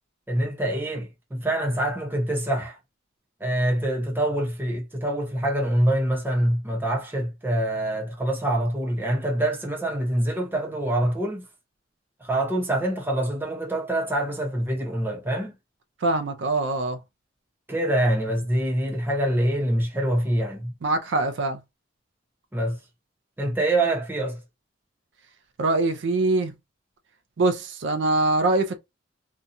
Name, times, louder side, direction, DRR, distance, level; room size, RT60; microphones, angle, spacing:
voice 1, 0.3-2.8 3.4-11.4 12.2-15.5 17.7-20.7 22.5-22.8 23.4-24.4, right 1 dB, 10° right, 0.7 m, -25 dB
voice 2, 16.0-17.0 20.8-21.6 25.6-26.5 27.4-28.8, right 2 dB, 60° right, 0.4 m, -23 dB
2.7 x 2.2 x 2.5 m
head